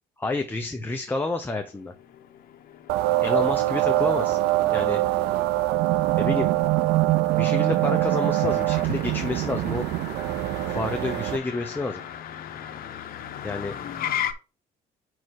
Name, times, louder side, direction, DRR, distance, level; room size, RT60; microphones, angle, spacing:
voice 1, 0.2-1.9 3.2-4.4 4.7-5.0 6.2-6.5 7.4-9.8 10.7-12.0 13.4-13.7, left 2 dB, 10° left, 4 dB, 0.7 m, -29 dB
Motor vehicle (road), 1.2-14.3, left 10 dB, 60° left, 0.9 m, -38 dB
sound 1, 2.9-11.4, right 17 dB, 80° right, 0.4 m, -23 dB
5.4 x 4.8 x 4.7 m, 0.32 s
cardioid pair, 110°, 17 cm